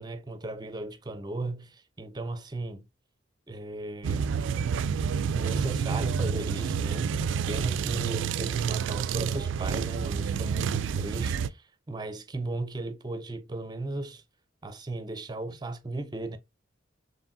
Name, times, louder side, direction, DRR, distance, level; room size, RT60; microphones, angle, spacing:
voice 1, 0.0-2.9 3.5-4.3 5.3-14.2 14.6-16.4, right 2 dB, 20° right, 0.5 m, -36 dB
sound 1, 4.0-11.5, right 6 dB, 80° right, 0.3 m, -29 dB
4.7 x 3.1 x 2.6 m
head